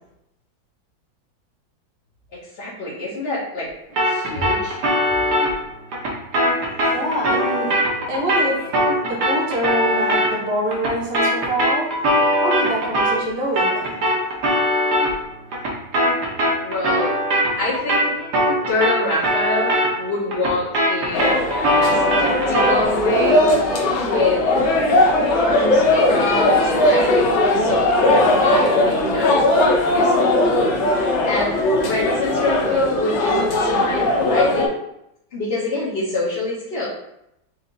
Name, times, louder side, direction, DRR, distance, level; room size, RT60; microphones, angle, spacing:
voice 1, 2.3-3.7 4.0-4.8 16.6-17.2 17.5-18.2 18.7-21.4 21.8-23.5 24.0-24.4 25.3-27.1 27.5-30.9 31.2-34.7 35.3-36.9, left 2 dB, 40° left, -10 dB, 1.1 m, -26 dB
sound 1, 4.0-13.3 13.6-22.9, equal, 60° right, 1.5 m, -21 dB
voice 2, 6.8-7.7 8.1-8.6 9.0-11.8 12.4-14.0, equal, 40° right, -3 dB, 1.1 m, -25 dB
sound 2, 21.1-34.7, left 1 dB, 80° left, 1.6 m, -18 dB
4.6 x 2.8 x 3.9 m, 0.81 s
omnidirectional pair, 2.1 m